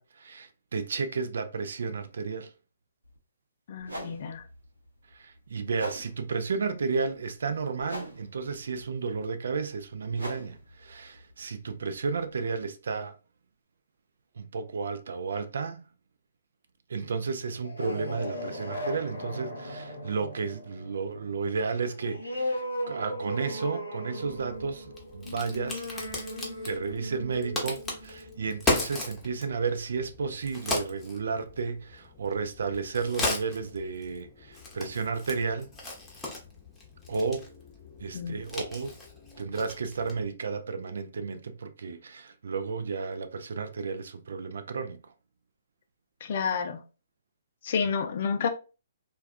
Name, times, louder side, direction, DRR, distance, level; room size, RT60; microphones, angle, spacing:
voice 1, 0.0-2.5 5.1-13.1 14.4-15.8 16.9-25.8 26.6-35.7 37.1-37.5 38.0-39.0 39.4-45.0, right 4 dB, 65° right, 0.4 m, -32 dB
sound 1, 3.0-3.2 3.8-12.6, equal, 85° right, 0.7 m, -45 dB
voice 2, 3.7-4.4 38.1-38.4 46.2-46.8 47.6-48.5, left 6 dB, 50° left, 0.4 m, -30 dB
sound 2, 17.5-28.7, equal, 90° left, 0.7 m, -37 dB
Crack, 24.2-40.3, left 2 dB, 10° left, 0.7 m, -37 dB
2.3 x 2.2 x 2.4 m
figure-of-eight pair, 130°, 0 cm